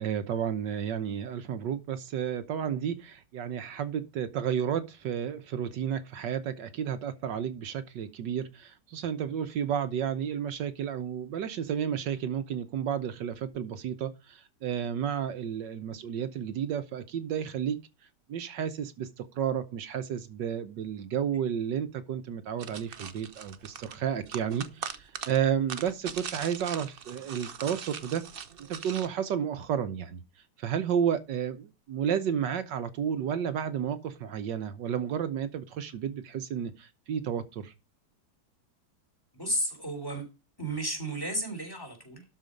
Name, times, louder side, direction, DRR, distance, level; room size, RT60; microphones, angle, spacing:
voice 1, 0.0-17.8 18.3-28.2 28.7-30.2 30.6-37.7, right 8 dB, 75° right, 1.5 m, -32 dB
sound 1, 22.6-29.1, right 7 dB, 45° right, 0.7 m, -41 dB
voice 2, 39.3-40.2 40.6-42.2, right 1 dB, 10° left, 3.4 m, -33 dB
12.5 x 5.1 x 5.2 m
omnidirectional pair, 2.0 m